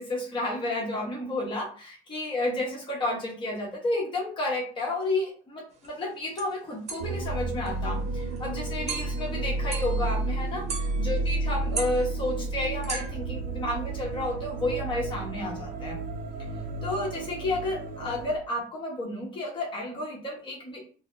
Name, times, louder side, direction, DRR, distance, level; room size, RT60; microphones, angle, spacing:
voice 1, 0.0-16.0 16.8-20.8, left 1 dB, 30° left, -3 dB, 1.1 m, -31 dB
sound 1, 5.8-5.9 6.4-6.5 6.9-7.2 7.7-7.8 8.2-8.4 8.9-9.3 9.7-10.2 10.7-11.4 11.7-13.1, right 5 dB, 40° right, 0.9 m, -37 dB
sound 2, 7.0-18.4, right 2 dB, 60° right, 0.5 m, -32 dB
3.9 x 2.0 x 2.6 m, 0.39 s
cardioid pair, 130°, 17 cm